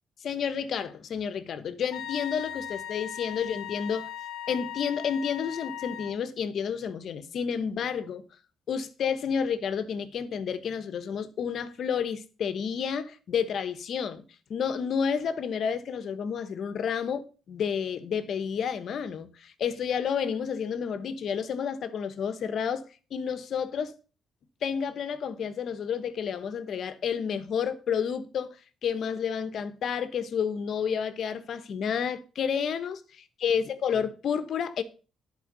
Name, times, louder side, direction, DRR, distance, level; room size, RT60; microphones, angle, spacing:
voice 1, 0.2-4.1 4.5-8.2 8.7-14.2 14.5-22.8 23.1-23.9 24.6-28.5 28.8-34.8, left 7 dB, 65° left, 1.2 m, -30 dB
Wind instrument woodwind instrument, 1.9-6.2, left 11 dB, 80° left, 0.6 m, -38 dB
11.0 x 4.9 x 6.8 m
cardioid pair, 90°, 0 cm